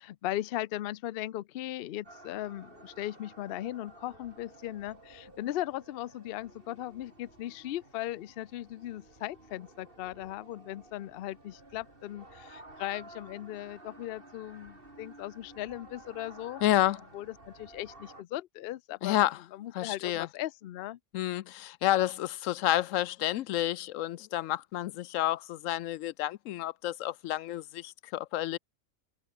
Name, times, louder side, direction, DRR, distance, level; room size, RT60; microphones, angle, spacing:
voice 1, 0.0-16.6 17.1-21.0, left 14 dB, 60° left, 0.6 m, -38 dB
sound 1, 2.0-18.2, right 2 dB, 45° right, 4.4 m, -53 dB
voice 2, 16.6-17.0 19.0-19.4 19.7-20.3 21.1-28.6, left 14 dB, 85° left, 1.0 m, -30 dB
omnidirectional pair, 1.3 m